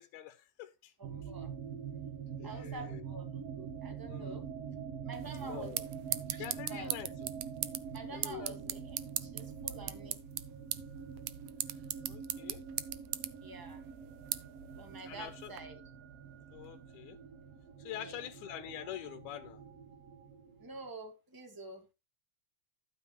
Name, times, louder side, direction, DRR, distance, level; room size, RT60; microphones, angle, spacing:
voice 1, 0.0-0.9 2.4-3.0 4.0-4.4 5.4-5.8 6.4-7.1 8.1-8.5 12.0-12.6 15.1-15.5 16.5-17.2 17.8-19.6, left 12 dB, 80° left, 2.1 m, -45 dB
voice 2, 1.0-1.5 2.4-3.3 3.6-4.4 5.1-5.8 6.3-6.9 7.9-10.2 13.4-13.8 14.7-15.8 18.0-18.3 20.6-21.8, right 3 dB, 10° right, 1.0 m, -48 dB
sound 1, 1.0-20.9, right 7 dB, 60° right, 2.0 m, -45 dB
sound 2, 5.1-15.6, right 14 dB, 90° right, 1.4 m, -40 dB
12.0 x 7.6 x 3.1 m
omnidirectional pair, 3.6 m